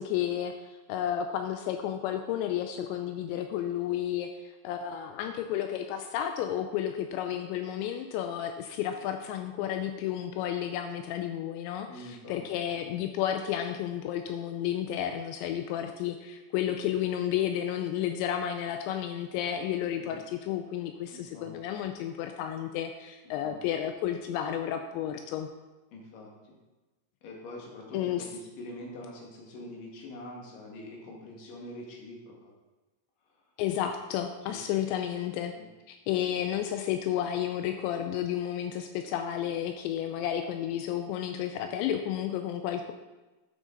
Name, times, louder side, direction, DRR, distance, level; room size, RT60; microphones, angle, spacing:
voice 1, 0.0-25.5 27.9-28.3 33.6-35.5 35.9-42.9, left 10 dB, 85° left, 6 dB, 2.9 m, -32 dB
voice 2, 11.9-12.4 20.0-20.2 21.1-21.5 23.3-23.6 25.9-26.6 27.2-32.5 34.5-34.8 35.6-35.7, left 1 dB, 55° left, -1 dB, 3.2 m, -45 dB
11.0 x 7.7 x 3.9 m, 1.1 s
omnidirectional pair, 5.1 m